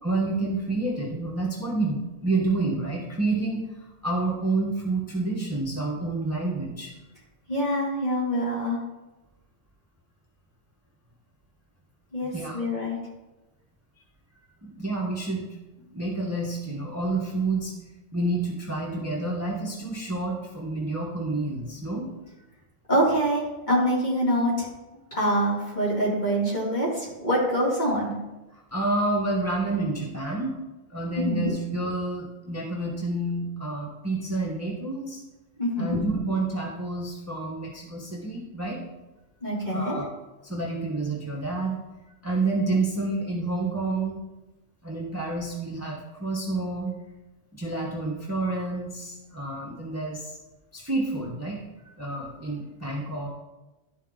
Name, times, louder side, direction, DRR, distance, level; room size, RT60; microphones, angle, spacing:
voice 1, 0.0-3.7 4.0-6.9 12.3-12.6 14.8-15.5 15.9-17.7 18.1-22.1 28.5-30.5 30.9-35.2 35.8-38.8 39.7-40.0 40.4-41.8 42.2-44.2 44.8-46.9 47.5-50.4 50.7-51.6 51.8-53.3, right 2 dB, 15° right, -3 dB, 1.0 m, -29 dB
voice 2, 7.5-8.8 12.1-13.0 22.9-24.7 25.1-28.1 31.2-31.5 35.6-36.0 39.4-40.0, equal, 35° left, -6 dB, 2.8 m, -25 dB
11.5 x 4.6 x 3.8 m, 1.0 s
omnidirectional pair, 1.3 m